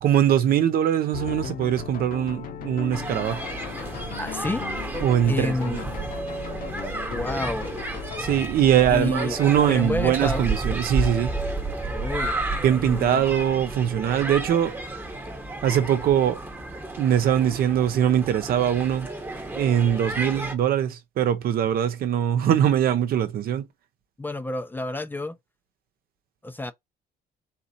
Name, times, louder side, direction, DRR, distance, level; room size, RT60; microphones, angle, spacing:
voice 1, 0.0-3.4 5.0-5.8 8.2-11.3 12.6-14.7 15.6-16.4 17.0-19.1 19.5-23.6, right 10 dB, 65° right, 0.9 m, -22 dB
sound 1, 1.1-13.8, left 8 dB, 55° left, 1.1 m, -38 dB
sound 2, 2.9-20.5, right 2 dB, 10° right, 1.0 m, -32 dB
voice 2, 3.4-4.6 5.2-5.8 7.1-7.7 8.9-9.4 9.7-10.5 11.9-12.4 12.8-13.2 24.2-25.4 26.4-26.7, left 2 dB, 10° left, 0.6 m, -30 dB
4.0 x 3.0 x 4.2 m
cardioid pair, 110°, 17 cm